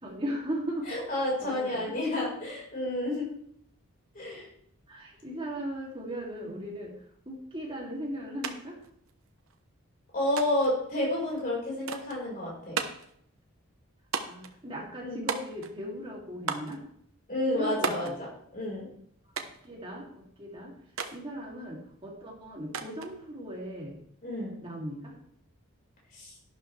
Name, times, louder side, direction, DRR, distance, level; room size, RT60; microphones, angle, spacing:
voice 1, 0.0-1.0 1.4-1.9 2.4-2.5 4.9-6.9 7.3-8.8 14.2-16.8 17.5-18.1 19.6-20.7 21.1-24.0 24.6-25.2, equal, 25° right, -3 dB, 2.7 m, -38 dB
voice 2, 0.8-3.3 4.1-4.5 6.4-6.6 10.1-12.8 15.0-15.3 17.3-18.9 24.2-24.6 26.1-26.3, left 1 dB, 40° left, -4 dB, 4.8 m, -30 dB
sound 1, 8.4-8.6 8.8-9.6 10.4-10.8 11.9-12.2 12.8-13.1 14.1-14.5 15.3-15.8 16.5-16.8 17.8-18.2 19.4-19.7 21.0-21.2 22.7-23.1, right 5 dB, 70° right, 1.0 m, -34 dB
12.0 x 11.5 x 3.3 m, 0.67 s
head